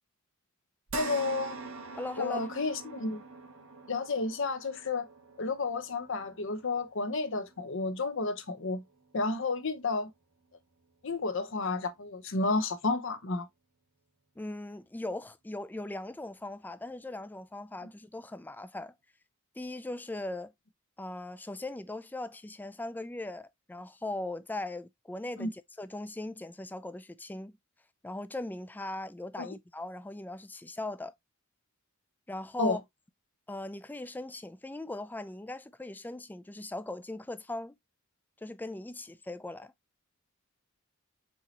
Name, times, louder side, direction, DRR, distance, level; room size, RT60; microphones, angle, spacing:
voice 1, 0.9-1.6 2.2-3.2 3.9-5.1 5.4-8.8 9.1-10.1 11.0-13.5 25.4-25.5 29.4-29.5 32.6-32.8, left 3 dB, 60° left, 0.8 m, -31 dB
sound 1, 0.9-9.5 9.9-10.1 11.5-11.6, right 4 dB, 80° right, 1.0 m, -45 dB
voice 2, 1.9-2.5 14.4-18.9 19.6-20.5 21.0-27.6 28.0-31.1 32.3-32.8 33.5-37.7 38.4-39.7, left 2 dB, 10° left, 0.3 m, -39 dB
4.6 x 4.0 x 2.8 m
head